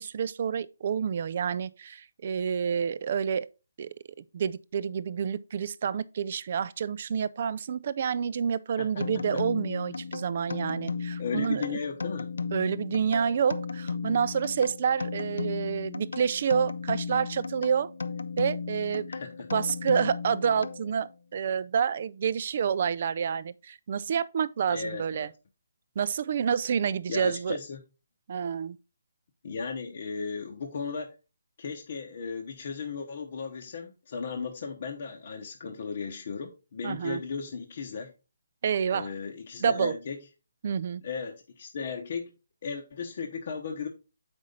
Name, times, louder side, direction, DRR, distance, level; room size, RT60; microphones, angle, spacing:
voice 1, 0.0-3.5 3.8-3.9 4.3-11.8 12.5-17.9 18.4-19.1 19.5-25.3 26.0-27.6 28.3-28.8 36.8-37.2 38.6-39.1 39.6-40.0 40.6-41.0, right 7 dB, 35° right, 0.4 m, -28 dB
sound 1, 9.0-21.2, left 5 dB, 80° left, 0.7 m, -35 dB
voice 2, 11.2-12.3 19.1-19.5 24.7-25.3 27.1-27.8 29.4-31.1 31.6-38.1 38.9-40.2 41.0-42.3 42.6-43.9, left 5 dB, 40° left, 0.9 m, -36 dB
7.5 x 5.3 x 3.8 m
hypercardioid pair, 175°, 0 cm